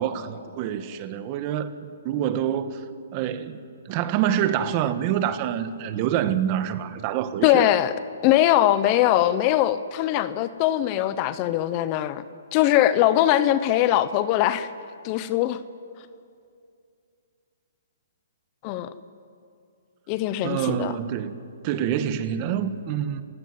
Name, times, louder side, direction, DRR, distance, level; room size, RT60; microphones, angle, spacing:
voice 1, 0.0-2.8 3.1-7.7 20.4-21.4 21.6-23.2, right 10 dB, 30° right, 1.4 m, -26 dB
voice 2, 7.4-7.9 8.2-12.2 12.5-14.7 15.0-15.6 18.6-18.9 20.1-20.9, left 13 dB, 30° left, 0.9 m, -21 dB
26.5 x 17.0 x 9.5 m
hypercardioid pair, 150°, 0 cm